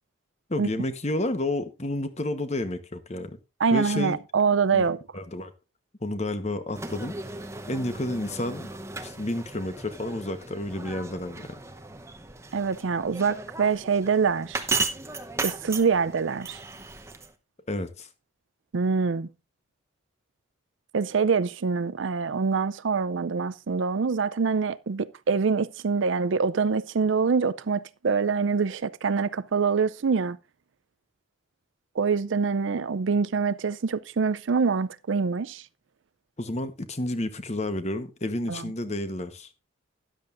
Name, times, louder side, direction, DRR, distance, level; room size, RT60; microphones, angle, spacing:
voice 1, 0.5-3.4 3.7-4.2 4.7-4.8 5.1-5.5 6.0-7.1 7.7-8.7 9.0-11.5 17.7-18.1 36.4-39.5, left 1 dB, 35° left, 1.1 m, -30 dB
voice 2, 3.6-5.0 12.5-14.7 15.4-16.6 18.7-19.3 20.9-30.4 32.0-35.6 38.5-38.7, right 5 dB, 70° right, 0.5 m, -25 dB
sound 1, 6.7-17.3, right 3 dB, 15° right, 0.8 m, -36 dB
13.0 x 11.0 x 2.5 m
head